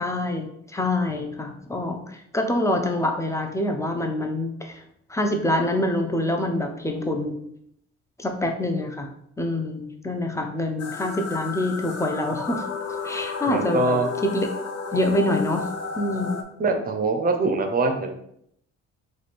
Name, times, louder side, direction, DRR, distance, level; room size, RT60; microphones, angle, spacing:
voice 1, 0.0-4.8 5.1-7.3 8.2-9.1 9.4-14.5 14.9-15.7 16.0-16.4, left 1 dB, 10° left, 4 dB, 0.6 m, -26 dB
sound 1, 10.8-16.4, left 4 dB, 55° left, 0.6 m, -32 dB
voice 2, 13.5-14.1 16.6-18.2, right 3 dB, 30° right, 5 dB, 0.7 m, -23 dB
3.2 x 2.4 x 4.2 m, 0.71 s
cardioid pair, 90°, 30 cm